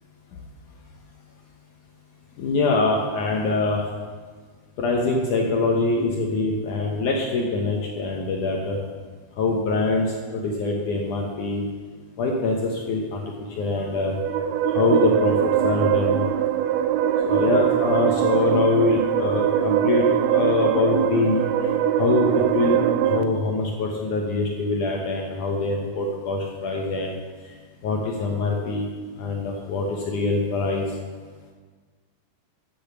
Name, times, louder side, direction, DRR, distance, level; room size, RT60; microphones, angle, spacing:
voice 1, 2.4-3.8 4.8-8.8 9.4-11.6 12.2-13.2 13.6-14.2 14.7-16.2 17.3-21.4 22.0-22.8 23.1-27.2 27.8-28.9 29.2-30.8, left 3 dB, 70° left, 0 dB, 2.0 m, -24 dB
sound 1, 13.8-23.2, right 10 dB, 85° right, 2.5 m, -22 dB
10.5 x 7.8 x 6.9 m, 1.5 s
omnidirectional pair, 4.7 m